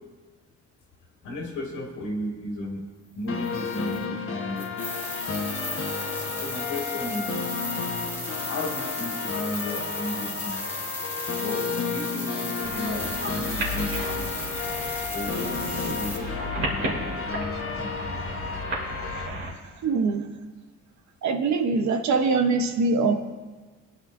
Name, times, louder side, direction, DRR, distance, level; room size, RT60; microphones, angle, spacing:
voice 1, 1.2-2.8 3.1-4.8 6.2-7.5 8.5-10.6 11.4-14.3 15.1-17.2 17.7-17.9, left 1 dB, 90° left, -2 dB, 2.3 m, -34 dB
sound 1, 3.3-19.3, left 5 dB, 45° left, 1.3 m, -32 dB
sound 2, 3.4-4.0 4.6-16.2, left 1 dB, 10° left, 2.4 m, -35 dB
sound 3, 12.6-19.5, equal, 55° right, 2.9 m, -33 dB
voice 2, 19.8-20.3 21.2-23.1, right 4 dB, 70° right, 7 dB, 1.1 m, -23 dB
21.5 x 9.9 x 2.7 m, 1.3 s
cardioid pair, 90°, 30 cm